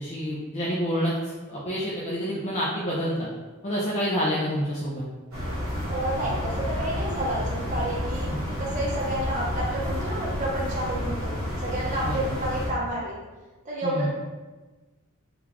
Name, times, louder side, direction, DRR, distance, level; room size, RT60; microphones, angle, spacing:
voice 1, 0.0-3.3 3.6-5.1 8.2-8.4 12.0-12.4 13.8-14.1, equal, 35° left, -7 dB, 0.5 m, -28 dB
sound 1, 5.3-12.7, equal, 70° right, 1.2 m, -30 dB
voice 2, 5.9-8.3 8.6-13.1 13.6-14.1, right 1 dB, 35° right, -5 dB, 0.7 m, -30 dB
3.8 x 2.4 x 2.9 m, 1.2 s
head